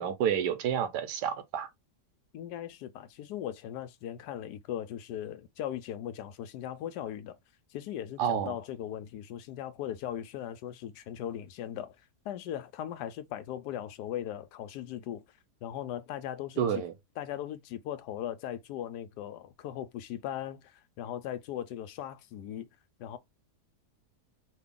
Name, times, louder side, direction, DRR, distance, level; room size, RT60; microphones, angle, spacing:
voice 1, 0.0-1.7 8.2-8.5 16.6-16.9, right 9 dB, 85° right, 1.2 m, -29 dB
voice 2, 2.3-7.4 7.7-12.0 12.2-15.2 15.6-16.8 17.2-22.7 23.0-23.2, left 11 dB, 80° left, 1.2 m, -38 dB
3.3 x 2.2 x 3.6 m
omnidirectional pair, 1.8 m